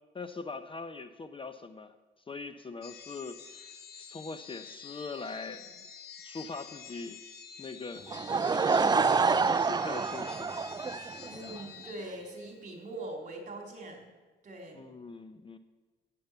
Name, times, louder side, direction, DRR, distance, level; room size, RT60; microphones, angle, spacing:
voice 1, 0.1-2.0 2.3-5.7 6.2-7.2 7.6-10.7 11.0-11.3 14.7-15.6, left 4 dB, 25° left, 10 dB, 0.7 m, -42 dB
sound 1, 2.8-12.6, left 7 dB, 50° left, 1.5 m, -48 dB
Laughter / Crowd, 8.1-11.6, right 4 dB, 20° right, 0.4 m, -27 dB
voice 2, 11.3-14.1 14.4-14.8, right 1 dB, 40° right, 1 dB, 3.6 m, -42 dB
10.5 x 8.6 x 8.0 m, 1.3 s
cardioid pair, 90°, 20 cm